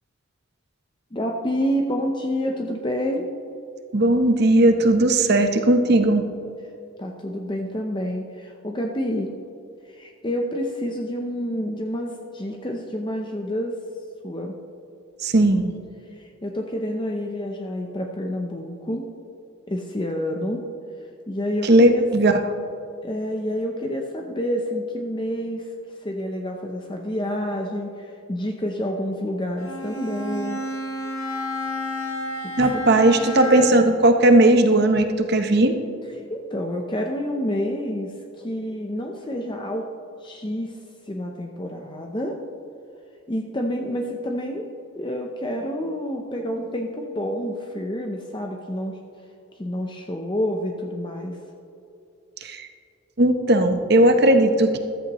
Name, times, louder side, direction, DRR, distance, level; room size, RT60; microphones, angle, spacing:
voice 1, 1.1-3.3 7.0-9.3 9.9-13.8 14.2-14.6 16.2-19.2 19.7-20.7 21.3-22.1 23.0-25.7 26.0-30.7 32.4-32.8 36.3-39.9 40.2-40.8 41.1-42.4 43.3-49.0 49.6-51.4, equal, 25° left, 2 dB, 0.7 m, -28 dB
voice 2, 3.9-6.3 15.2-15.7 21.6-22.4 32.6-35.8 52.4-52.7 53.2-54.8, right 1 dB, 50° right, 7 dB, 0.9 m, -17 dB
Bowed string instrument, 29.6-34.0, left 1 dB, 90° left, 1.5 m, -30 dB
14.0 x 13.5 x 3.1 m, 2.6 s
head